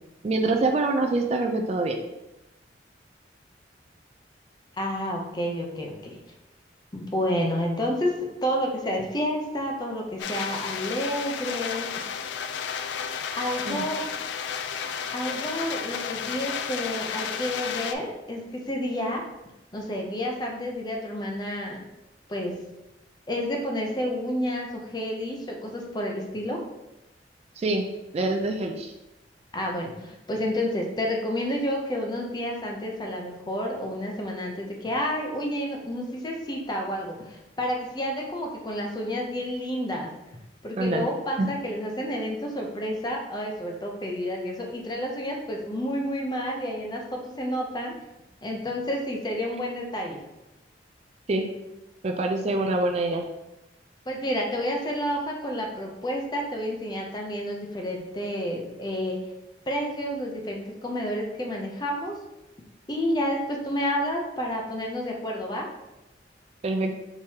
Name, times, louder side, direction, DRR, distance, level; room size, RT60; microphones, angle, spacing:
voice 1, 0.2-2.0 13.7-13.8 27.6-27.9 28.1-28.9 40.8-41.1 41.4-41.5 51.3-51.5 52.0-53.2 66.6-66.9, right 2 dB, 35° right, 4 dB, 0.3 m, -25 dB
voice 2, 4.8-6.2 6.9-8.1 8.4-11.9 13.4-14.0 15.1-19.2 19.7-21.8 22.3-22.5 23.3-26.6 29.5-40.1 40.6-47.9 48.4-50.2 54.1-59.2 59.7-62.2 62.9-65.7, equal, 25° left, 0 dB, 0.6 m, -30 dB
sound 1, 10.2-17.9, left 7 dB, 75° left, 0.3 m, -32 dB
4.6 x 3.6 x 2.8 m, 0.96 s
head